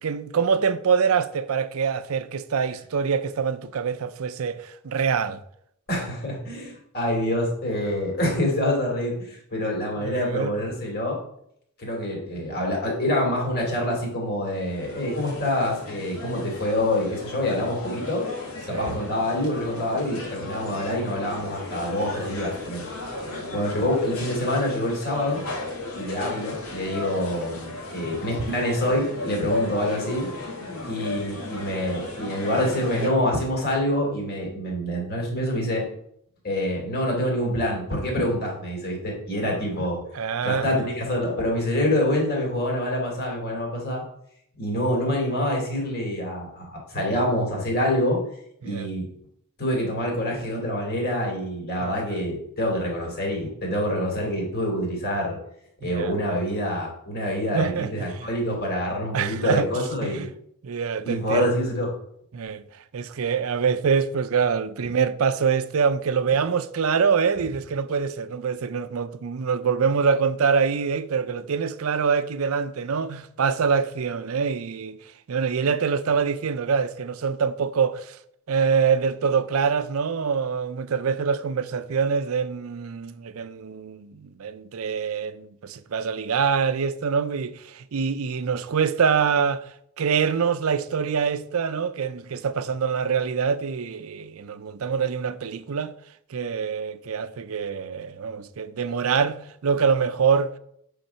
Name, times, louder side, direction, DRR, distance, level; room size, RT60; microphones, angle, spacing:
voice 1, 0.0-5.4 10.0-10.6 18.7-19.0 23.3-23.5 28.0-28.3 40.1-40.9 48.6-48.9 51.8-52.2 55.8-56.2 57.5-58.3 59.1-59.7 60.0-60.3 60.6-61.5 62.3-62.6 62.9-75.0 75.3-78.2 78.5-89.6 90.0-95.9 96.3-100.6, right 6 dB, 75° right, 0.5 m, -25 dB
voice 2, 5.9-11.2 11.8-18.2 18.6-22.8 23.5-25.4 26.0-30.3 30.9-35.8 36.4-40.0 40.4-44.0 44.6-48.2 48.6-49.1 49.6-55.4 55.8-60.3 61.0-61.9, left 1 dB, 50° left, 2.6 m, -26 dB
sound 1, 14.5-33.1, left 2 dB, 85° left, 1.9 m, -35 dB
8.1 x 3.9 x 5.7 m
head